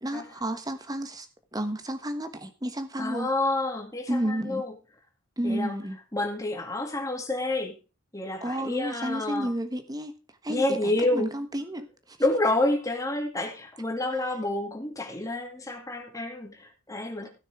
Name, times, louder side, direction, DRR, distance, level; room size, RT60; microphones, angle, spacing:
voice 1, 0.0-1.3 1.5-3.3 4.1-4.6 5.4-6.0 8.4-10.2 10.4-12.2 17.2-17.3, right 1 dB, 15° right, 1.3 m, -31 dB
voice 2, 3.0-4.7 5.4-5.7 6.1-7.8 8.1-9.5 10.5-11.3 12.2-17.3, left 2 dB, 15° left, 2.4 m, -29 dB
16.0 x 6.5 x 4.8 m
head